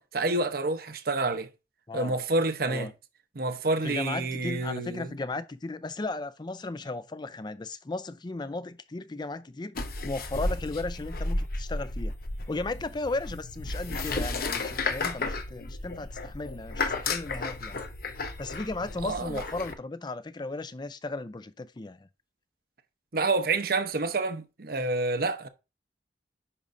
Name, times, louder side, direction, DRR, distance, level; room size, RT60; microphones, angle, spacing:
voice 1, 0.0-1.5 1.9-2.9 3.3-5.1 19.0-19.4 23.1-25.5, right 3 dB, 55° right, 0.8 m, -28 dB
voice 2, 1.9-2.2 2.7-2.9 3.8-12.1 12.5-17.8 18.4-22.1, left 2 dB, 25° left, 0.4 m, -35 dB
sound 1, 9.8-19.7, left 3 dB, 55° left, 0.9 m, -33 dB
10.0 x 5.4 x 2.6 m
head